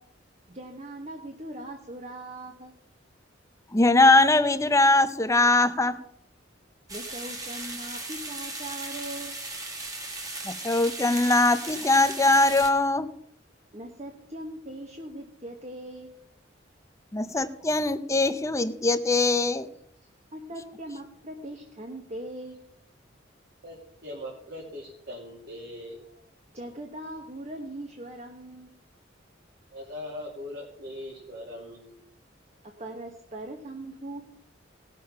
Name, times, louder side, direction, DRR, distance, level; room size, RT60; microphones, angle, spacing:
voice 1, 0.5-2.7 6.9-9.4 13.7-16.1 20.3-22.6 26.5-28.7 32.8-34.2, right 1 dB, 35° right, 2 dB, 1.3 m, -40 dB
voice 2, 3.7-6.0 10.4-13.1 17.1-19.7, left 2 dB, 15° left, 11 dB, 0.6 m, -21 dB
sound 1, 6.9-12.7, right 2 dB, 20° right, 1.8 m, -37 dB
voice 3, 23.6-26.2 29.7-32.0, left 1 dB, 60° right, -3 dB, 2.7 m, -40 dB
18.5 x 6.7 x 5.6 m, 0.72 s
head